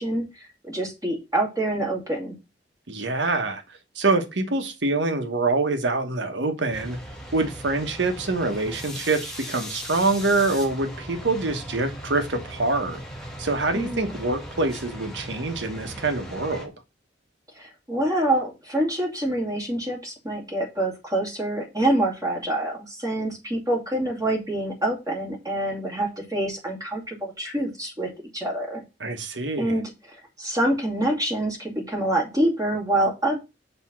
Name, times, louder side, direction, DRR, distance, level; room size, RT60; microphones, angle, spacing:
voice 1, 0.0-2.4 13.7-14.2 17.5-28.8 29.6-33.4, right 1 dB, 20° right, 2.6 m, -26 dB
voice 2, 2.9-3.6 3.9-7.0 7.3-13.0 13.4-16.7 29.0-29.7, right 3 dB, 85° right, 1.2 m, -25 dB
sound 1, 6.7-16.7, equal, ahead, 1.8 m, -38 dB
6.7 x 3.5 x 6.0 m
head